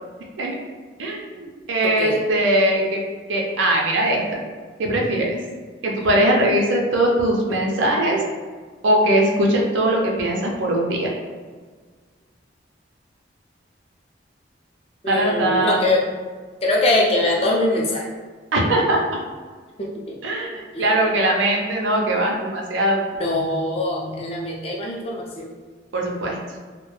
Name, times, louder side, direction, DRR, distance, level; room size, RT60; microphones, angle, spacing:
voice 1, 1.0-3.0 3.3-4.4 4.8-5.4 5.8-8.2 8.8-11.1 15.1-15.9 18.5-19.0 20.2-23.0 25.9-26.4, right 1 dB, 80° right, 0 dB, 0.4 m, -20 dB
voice 2, 1.8-2.2 5.1-5.2 15.0-16.0 16.6-18.0 19.8-20.1 20.7-20.8 23.2-25.5, left 2 dB, 30° left, -1 dB, 0.4 m, -22 dB
2.1 x 2.1 x 3.0 m, 1.5 s
head